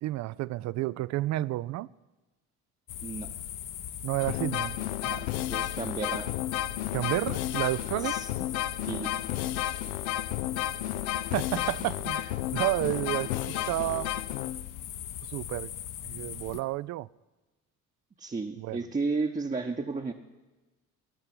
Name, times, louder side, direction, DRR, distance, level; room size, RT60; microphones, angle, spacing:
voice 1, 0.0-1.9 4.0-4.8 5.1-5.3 6.9-8.2 11.2-14.1 15.3-15.7 16.0-17.1 18.6-18.8, right 16 dB, 40° right, 0.4 m, -31 dB
sound 1, 2.9-16.6, left 10 dB, 45° left, 0.9 m, -40 dB
sound 2, 4.2-14.8, left 14 dB, 70° left, 0.6 m, -32 dB
voice 2, 5.5-6.3 8.0-8.3 8.9-9.1 18.2-20.1, right 4 dB, 15° right, 1.0 m, -32 dB
19.0 x 6.6 x 9.7 m
figure-of-eight pair, 50°, 45 cm